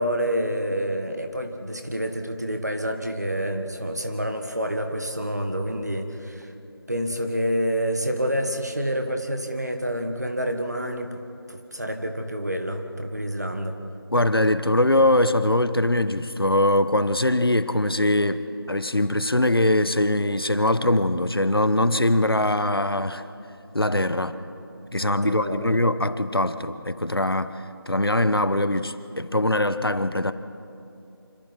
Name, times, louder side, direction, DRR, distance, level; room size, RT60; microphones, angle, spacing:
voice 1, 0.0-6.5 6.9-11.2 11.5-13.8 23.8-24.1 25.2-25.8, equal, 45° right, 5 dB, 1.7 m, -28 dB
voice 2, 14.1-23.2 23.7-24.3 24.9-30.3, left 1 dB, 70° left, 12 dB, 1.0 m, -22 dB
26.0 x 25.5 x 4.6 m, 2.7 s
figure-of-eight pair, 180°, 13 cm